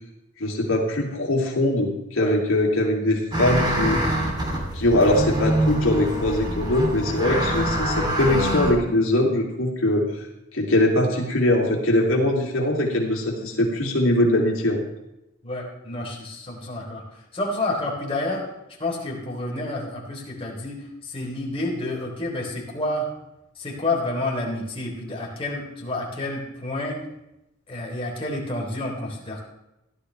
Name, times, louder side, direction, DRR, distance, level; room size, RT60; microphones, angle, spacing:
voice 1, 0.4-4.0 4.7-10.1 10.5-14.8, left 1 dB, 75° left, -1 dB, 2.9 m, -22 dB
sound 1, 3.3-8.7, right 1 dB, 20° right, 3.0 m, -25 dB
voice 2, 15.4-17.0 17.3-18.4 18.8-23.1 23.6-27.0 27.7-29.4, left 2 dB, 25° left, -2 dB, 3.5 m, -29 dB
16.5 x 12.0 x 3.4 m, 0.89 s
head